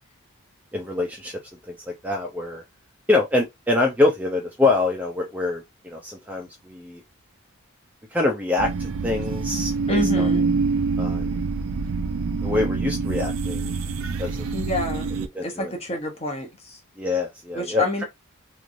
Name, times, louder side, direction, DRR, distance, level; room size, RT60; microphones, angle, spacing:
voice 1, 0.7-1.4 1.7-2.6 3.1-7.0 8.1-10.3 11.0-11.4 12.4-13.7 14.2-14.5 15.2-15.7 17.0-18.0, left 2 dB, 5° right, 0.5 m, -25 dB
sound 1, 8.6-15.3, right 4 dB, 75° right, 0.4 m, -25 dB
voice 2, 9.9-10.4 14.5-15.1 15.4-16.8 17.5-18.0, left 1 dB, 30° left, 0.8 m, -27 dB
3.1 x 2.5 x 2.5 m
head